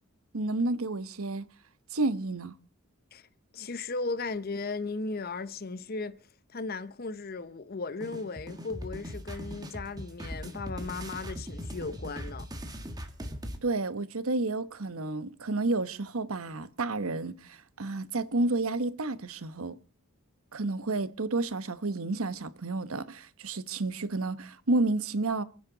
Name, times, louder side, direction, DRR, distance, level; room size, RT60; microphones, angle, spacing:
voice 1, 0.3-1.4 1.9-2.5 13.6-19.8 20.5-25.4, right 2 dB, 75° right, 1.0 m, -30 dB
voice 2, 3.5-6.2 6.5-12.5, left 3 dB, 45° left, 0.7 m, -36 dB
sound 1, 8.0-13.6, equal, 20° right, 1.6 m, -40 dB
28.0 x 9.9 x 4.0 m
head